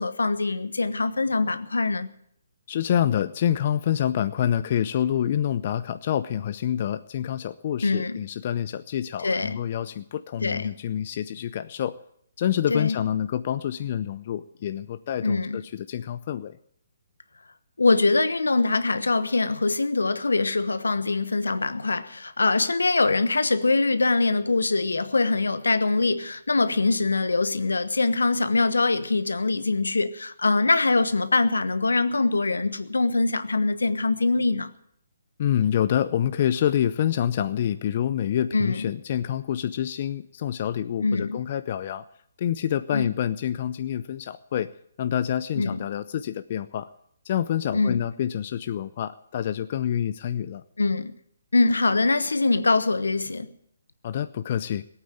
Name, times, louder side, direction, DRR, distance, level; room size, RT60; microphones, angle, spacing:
voice 1, 0.0-2.1 7.8-8.2 9.2-9.6 10.4-10.8 12.7-13.0 15.2-15.6 17.8-34.7 38.5-38.9 41.0-41.4 42.9-43.1 45.5-45.8 47.7-48.0 50.8-51.1 51.5-53.5, left 3 dB, 80° left, 1.1 m, -23 dB
voice 2, 2.7-12.0 12.4-16.6 35.4-42.0 42.4-44.7 45.0-46.9 47.2-50.6 54.0-54.8, left 10 dB, 45° left, 0.6 m, -27 dB
18.0 x 8.9 x 9.0 m
figure-of-eight pair, 140°, 0 cm